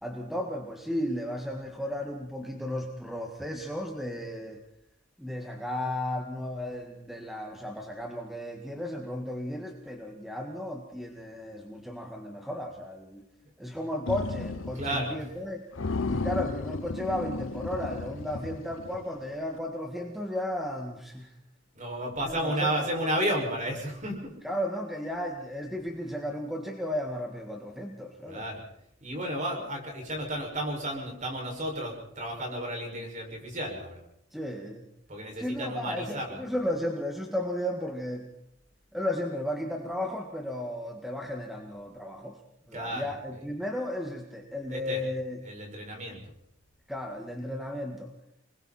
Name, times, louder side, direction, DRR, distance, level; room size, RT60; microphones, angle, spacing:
voice 1, 0.0-4.6 5.2-13.3 13.6-15.7 16.1-21.3 22.2-22.9 24.4-28.4 34.3-34.8 35.4-38.3 38.9-42.4 42.7-45.4 46.9-48.1, left 1 dB, ahead, 2 dB, 1.9 m, -34 dB
sound 1, 14.1-15.1 15.3-15.5 15.8-19.1, left 3 dB, 75° left, 0.8 m, -34 dB
voice 2, 14.7-15.2 21.7-24.3 28.3-28.6 29.0-34.0 35.1-36.4 42.7-43.5 44.7-45.0 45.4-46.2, right 1 dB, 40° right, 1 dB, 6.2 m, -32 dB
29.5 x 21.0 x 4.4 m, 0.73 s
head